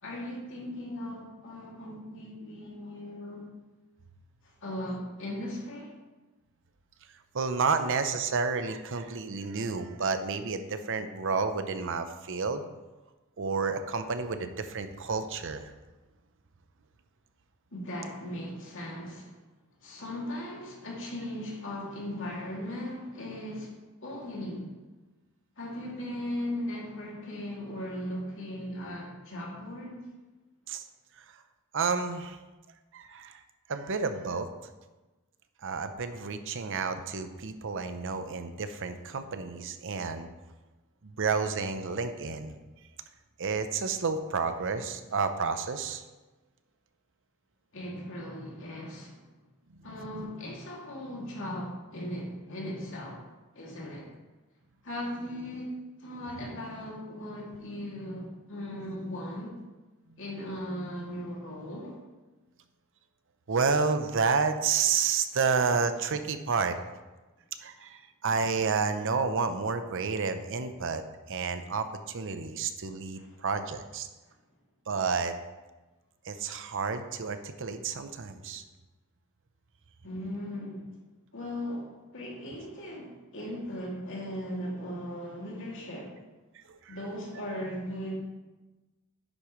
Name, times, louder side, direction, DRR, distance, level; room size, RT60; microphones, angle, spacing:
voice 1, 0.0-3.5 4.4-5.9 17.7-19.3 19.8-23.7 24.0-24.7 25.6-30.0 47.7-49.2 49.8-53.2 53.5-54.1 54.8-55.7 56.0-59.6 60.2-62.0 73.1-73.4 80.0-80.9 81.3-86.2 86.9-88.2, left 1 dB, 60° left, -3 dB, 2.5 m, -38 dB
voice 2, 7.3-12.7 13.4-15.7 30.7-30.8 31.7-32.4 32.9-33.4 33.7-34.5 35.6-40.3 41.0-42.6 43.4-46.0 63.5-66.8 67.6-71.0 71.3-74.1 74.9-75.3 76.3-78.6 86.7-87.0, right 5 dB, 60° right, 9 dB, 0.7 m, -30 dB
10.5 x 8.5 x 3.2 m, 1.2 s
head